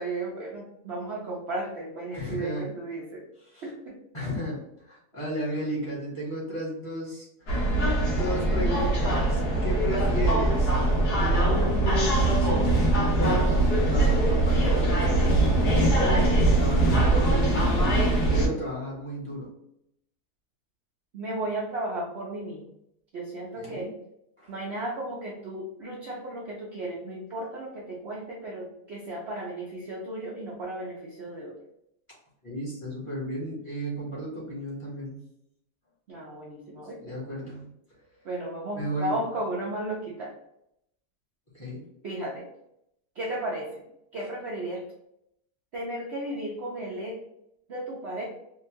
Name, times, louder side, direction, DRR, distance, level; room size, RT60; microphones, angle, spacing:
voice 1, 0.0-3.2 3.6-4.0 21.1-22.6 23.1-23.9 24.5-31.6 36.1-37.2 38.2-40.3 42.0-42.5 43.1-43.8 44.1-44.8 45.7-47.2 47.7-48.2, right 1 dB, 55° right, -3 dB, 0.8 m, -34 dB
voice 2, 2.1-2.7 3.4-3.7 4.1-7.6 8.1-10.8 11.2-12.7 13.2-15.3 16.0-18.0 18.3-19.5 23.6-23.9 24.4-24.5 32.4-35.2 37.0-37.7 38.7-39.2 41.5-41.8, equal, 20° left, -6 dB, 1.3 m, -34 dB
sound 1, 7.5-18.5, right 2 dB, 90° left, 1.6 m, -22 dB
3.6 x 2.5 x 2.9 m, 0.77 s
omnidirectional pair, 1.7 m